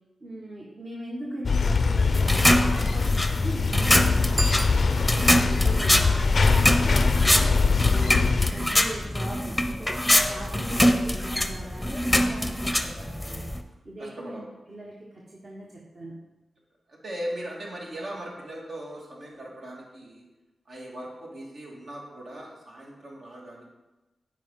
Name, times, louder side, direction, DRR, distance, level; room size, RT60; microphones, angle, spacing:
voice 1, 0.2-4.6 5.4-7.5 7.8-13.5 13.8-14.4 14.7-16.2, right 1 dB, 50° right, -4 dB, 1.3 m, -40 dB
sound 1, 1.4-8.5, left 4 dB, 60° left, 0.4 m, -23 dB
sound 2, 2.1-13.6, left 1 dB, 5° left, 0.6 m, -24 dB
Bicycle bell, 4.3-5.5, right 1 dB, 30° right, 0.4 m, -34 dB
voice 2, 4.9-5.9 8.0-8.3 14.0-14.4 16.9-20.2 20.7-23.6, right 1 dB, 75° right, -3 dB, 1.9 m, -39 dB
9.1 x 4.8 x 3.7 m, 1.1 s
cardioid pair, 60°, 0 cm